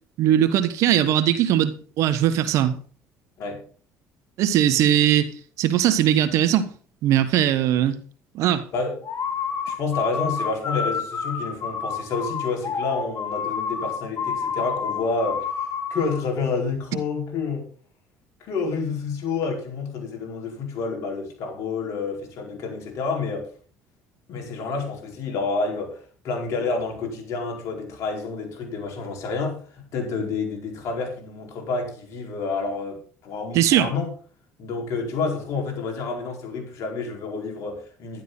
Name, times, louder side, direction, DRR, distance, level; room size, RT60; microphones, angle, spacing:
voice 1, 0.2-2.8 4.4-5.3 5.6-6.7 7.0-8.0 8.3-8.6 33.5-33.9, right 11 dB, 70° right, 1.4 m, -20 dB
sound 1, 9.0-16.2, left 6 dB, 45° left, 2.9 m, -29 dB
voice 2, 9.6-17.7 18.4-23.5 24.3-34.1 34.6-38.2, left 4 dB, 65° left, 4.7 m, -29 dB
12.0 x 11.5 x 4.1 m
supercardioid pair, 80°, 5 cm